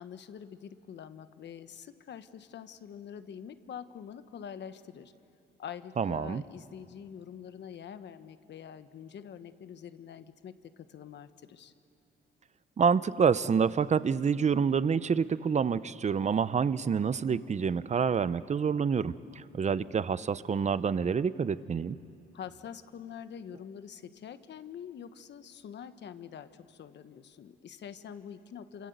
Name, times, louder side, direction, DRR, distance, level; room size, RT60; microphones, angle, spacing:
voice 1, 0.0-5.1 5.6-11.7 22.3-28.9, left 8 dB, 60° left, 11 dB, 1.3 m, -45 dB
voice 2, 6.0-6.4 12.8-22.0, right 6 dB, 35° right, 16 dB, 0.8 m, -27 dB
27.5 x 25.0 x 8.1 m, 2.5 s
cardioid pair, 90°, 20 cm